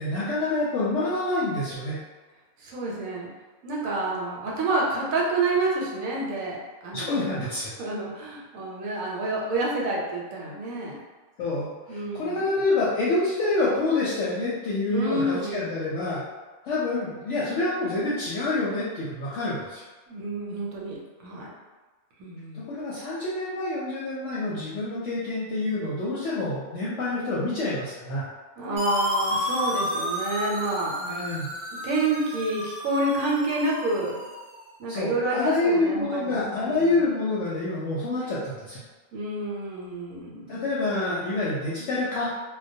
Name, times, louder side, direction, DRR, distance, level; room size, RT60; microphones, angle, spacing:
voice 1, 0.0-2.0 6.9-7.7 11.4-16.2 16.7-19.8 22.5-28.3 31.0-31.5 34.9-38.8 40.5-42.3, left 2 dB, 65° left, -8 dB, 0.8 m, -27 dB
voice 2, 2.6-3.3 3.6-6.6 6.8-7.2 7.8-11.0 11.9-12.4 14.9-15.6 20.1-21.5 22.2-22.6 28.6-30.9 31.8-34.2 34.8-37.1 39.1-40.6, right 2 dB, 75° right, -3 dB, 1.0 m, -28 dB
sound 1, 28.8-34.5, left 1 dB, 45° right, 0.4 m, -31 dB
2.2 x 2.2 x 2.6 m, 1.3 s
omnidirectional pair, 1.5 m